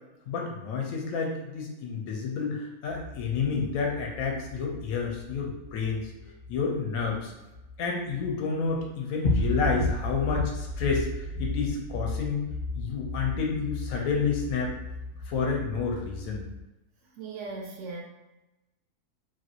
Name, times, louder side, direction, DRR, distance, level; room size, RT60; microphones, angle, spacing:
voice 1, 0.3-6.1 6.5-7.3 7.8-11.1 11.4-12.4 12.7-14.7 15.3-16.4, left 5 dB, 70° left, 0 dB, 1.0 m, -29 dB
sound 1, 2.9-8.3 8.6-8.8 9.2-16.6, left 2 dB, 45° left, 1.0 m, -34 dB
voice 2, 17.1-18.0, right 3 dB, 65° right, -1 dB, 0.7 m, -38 dB
2.9 x 2.5 x 2.7 m, 0.99 s
omnidirectional pair, 1.6 m